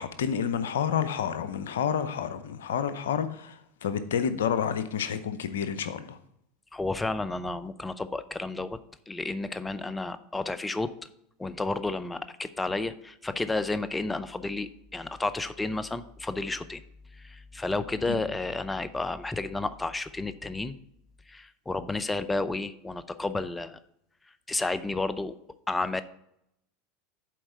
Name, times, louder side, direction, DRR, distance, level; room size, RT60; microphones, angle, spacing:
voice 1, 0.0-3.6 3.8-6.2 18.0-18.2, left 8 dB, 75° left, 12 dB, 0.6 m, -29 dB
voice 2, 6.7-8.8 9.1-10.9 11.4-16.8 17.2-20.8 21.3-23.8 24.5-25.3 25.7-26.0, left 2 dB, 15° left, 13 dB, 0.5 m, -31 dB
7.6 x 4.5 x 6.6 m, 0.75 s
hypercardioid pair, 85°, 0 cm